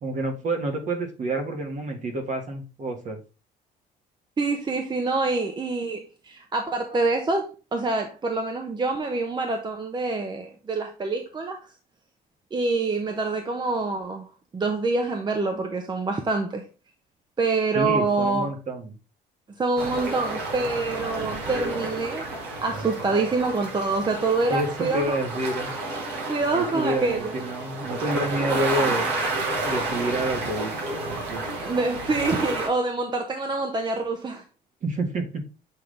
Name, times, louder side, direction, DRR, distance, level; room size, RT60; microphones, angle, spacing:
voice 1, 0.0-3.2 17.7-18.9 24.5-25.7 26.5-29.1 29.6-30.7 31.1-31.4 34.8-35.5, right 1 dB, 45° right, 1.7 m, -28 dB
voice 2, 4.4-11.6 12.5-14.3 14.5-16.6 17.4-18.5 19.6-22.3 22.6-25.2 26.3-27.4 31.6-34.4, right 3 dB, 25° right, 0.9 m, -26 dB
sound 1, 19.8-32.7, right 2 dB, 80° right, 2.2 m, -30 dB
7.6 x 3.9 x 3.3 m
cardioid pair, 110°, 17 cm